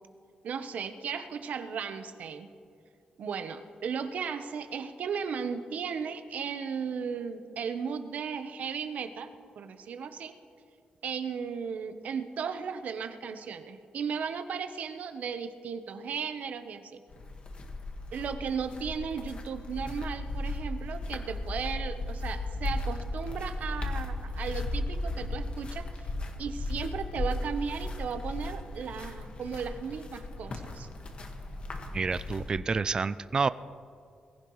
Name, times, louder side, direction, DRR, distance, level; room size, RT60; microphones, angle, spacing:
voice 1, 0.4-2.5 3.2-9.3 9.6-10.3 11.0-16.9 18.1-26.1 26.4-30.9, right 6 dB, 75° right, 9 dB, 1.0 m, -36 dB
sound 1, 17.1-32.5, left 2 dB, 45° left, 1.7 m, -36 dB
voice 2, 31.9-33.5, right 4 dB, 30° right, 15 dB, 0.3 m, -28 dB
22.0 x 15.0 x 3.2 m, 2.4 s
wide cardioid pair, 140°, 3 cm